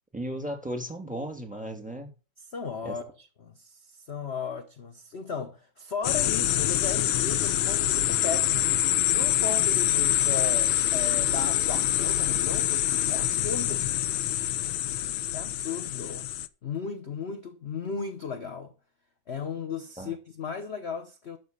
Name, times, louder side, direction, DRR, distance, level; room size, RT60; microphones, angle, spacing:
voice 1, 0.1-2.1 2.8-3.0 20.0-20.1, right 1 dB, 5° right, 2.0 m, -35 dB
voice 2, 2.5-13.8 15.3-16.3 16.6-18.7 19.3-21.4, left 5 dB, 40° left, 0.9 m, -36 dB
sound 1, 6.0-16.5, left 12 dB, 75° left, 1.5 m, -25 dB
12.5 x 5.4 x 6.7 m
omnidirectional pair, 2.4 m